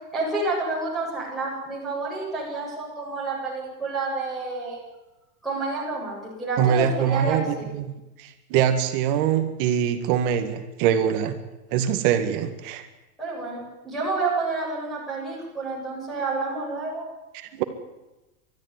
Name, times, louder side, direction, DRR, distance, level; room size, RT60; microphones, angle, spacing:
voice 1, 0.1-4.8 5.4-7.4 13.2-17.1, right 3 dB, ahead, -7 dB, 7.9 m, -29 dB
voice 2, 6.6-11.4 11.7-12.9 17.3-17.6, right 9 dB, 35° right, 7 dB, 2.0 m, -23 dB
30.0 x 13.5 x 9.8 m, 1.0 s
supercardioid pair, 165°, 46 cm